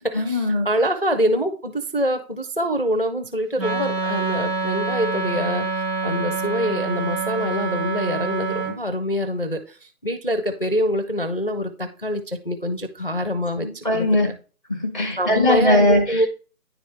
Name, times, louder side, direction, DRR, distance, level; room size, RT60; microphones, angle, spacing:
voice 1, 0.1-0.7 13.6-14.3 14.7-16.3, left 1 dB, 15° right, 5 dB, 0.7 m, -20 dB
voice 2, 0.7-5.6 6.0-9.6 10.0-11.7 12.0-12.2 12.5-13.7 13.9-14.1 15.2-16.3, equal, 40° left, 7 dB, 0.4 m, -24 dB
Wind instrument woodwind instrument, 3.6-8.8, right 4 dB, 90° right, 1.6 m, -26 dB
9.8 x 3.3 x 3.2 m, 0.35 s
figure-of-eight pair, 155°, 46 cm